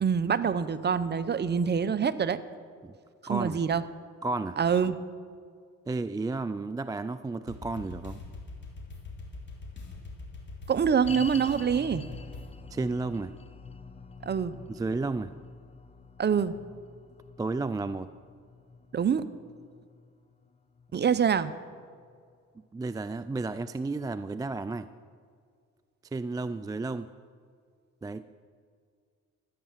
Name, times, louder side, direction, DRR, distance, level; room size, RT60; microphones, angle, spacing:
voice 1, 0.0-2.4 3.2-3.8 4.6-5.0 10.7-12.1 14.2-14.5 16.2-16.6 18.9-19.2 20.9-21.5, right 7 dB, 35° right, 13 dB, 0.7 m, -25 dB
voice 2, 3.3-3.6 4.2-4.6 5.9-8.2 12.7-13.3 14.7-15.3 17.4-18.1 22.7-24.9 26.1-27.1 28.0-28.2, right 3 dB, 15° right, 12 dB, 0.3 m, -32 dB
sound 1, 7.4-12.5, left 3 dB, 35° left, 3.4 m, -43 dB
sound 2, 11.1-22.4 22.6-22.7 23.4-23.5, left 4 dB, 20° left, 0.9 m, -47 dB
13.5 x 9.6 x 7.3 m, 2.1 s
cardioid pair, 90°, 30 cm